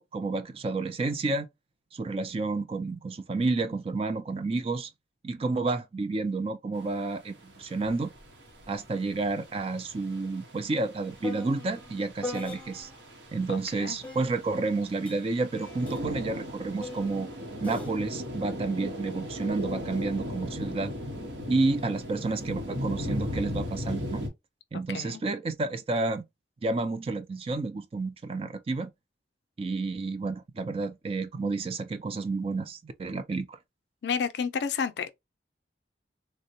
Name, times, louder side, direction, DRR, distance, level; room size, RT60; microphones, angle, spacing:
voice 1, 0.0-1.5 1.9-4.9 5.2-8.1 8.7-12.9 13.3-17.3 17.6-20.9 21.5-24.3 24.7-26.2 26.6-28.9 29.6-33.6, right 3 dB, 35° right, 0.4 m, -30 dB
sound 1, 6.8-24.3, left 1 dB, 80° right, 1.0 m, -38 dB
sound 2, 7.9-8.0 8.3-13.1 14.0-19.6 20.4-20.8, left 2 dB, 5° left, 0.6 m, -44 dB
voice 2, 13.5-14.0 24.9-25.2 34.0-35.1, left 6 dB, 65° left, 0.4 m, -31 dB
3.6 x 2.1 x 2.7 m
head